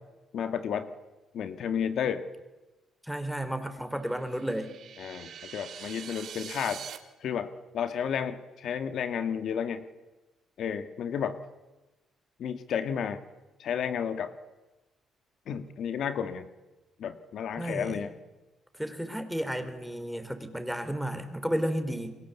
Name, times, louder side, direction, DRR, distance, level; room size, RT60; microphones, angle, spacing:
voice 1, 0.3-0.9 1.3-2.2 5.0-6.8 7.2-9.9 10.6-11.4 12.4-13.2 13.6-14.3 15.5-16.5 17.0-18.1, left 8 dB, 70° left, 10 dB, 1.8 m, -32 dB
voice 2, 3.0-4.7 17.6-18.0 18.7-22.2, equal, ahead, 8 dB, 4.2 m, -32 dB
sound 1, 4.2-7.0, right 8 dB, 65° right, 3.0 m, -43 dB
30.0 x 23.0 x 8.4 m, 1.1 s
cardioid pair, 90°, 0 cm